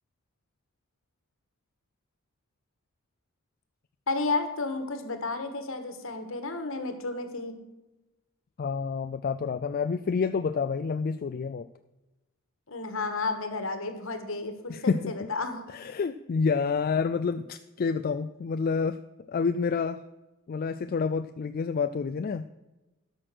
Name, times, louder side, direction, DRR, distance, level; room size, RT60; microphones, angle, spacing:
voice 1, 4.1-7.5 12.7-15.7, left 3 dB, 65° left, 7 dB, 1.5 m, -32 dB
voice 2, 8.6-11.7 14.7-15.1 15.7-19.0 19.3-20.0 20.5-22.5, left 5 dB, 45° left, 9 dB, 0.3 m, -28 dB
12.5 x 6.2 x 6.1 m, 1.0 s
head